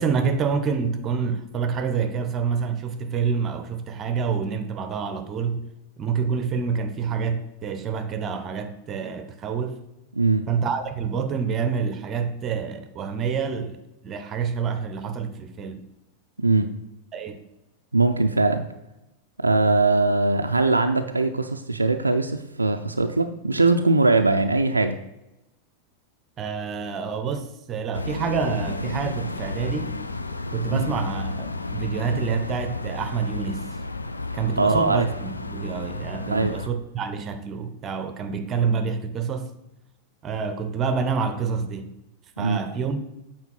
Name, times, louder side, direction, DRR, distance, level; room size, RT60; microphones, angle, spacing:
voice 1, 0.0-5.7 6.0-9.8 10.5-13.8 14.0-15.8 17.1-17.4 26.4-30.0 30.5-33.7 34.3-39.5 40.2-41.9 42.4-43.0, right 6 dB, 30° right, 0.7 m, -27 dB
voice 2, 10.1-10.5 16.4-16.7 17.9-18.7 19.4-25.0 30.7-30.9 34.6-35.1 36.3-36.5 42.4-42.6, right 3 dB, 80° right, 0.4 m, -21 dB
sound 1, 27.9-36.7, left 2 dB, 80° left, 0.4 m, -32 dB
8.4 x 4.4 x 5.3 m
figure-of-eight pair, 90°, 0 cm